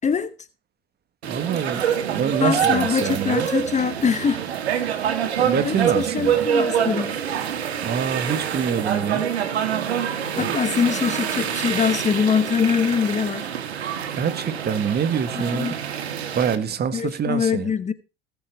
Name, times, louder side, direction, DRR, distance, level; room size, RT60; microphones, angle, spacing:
voice 1, 0.0-0.3 2.4-4.4 5.6-7.2 10.0-13.5 15.4-15.8 16.9-17.9, left 6 dB, 20° left, 1.1 m, -23 dB
voice 2, 1.2-3.5 5.3-6.5 7.8-9.3 10.4-10.6 14.1-15.8 16.3-17.7, right 7 dB, 30° right, 1.6 m, -26 dB
sound 1, 1.2-16.6, right 8 dB, 85° right, 2.1 m, -26 dB
18.5 x 7.3 x 4.6 m
hypercardioid pair, 85°, 31 cm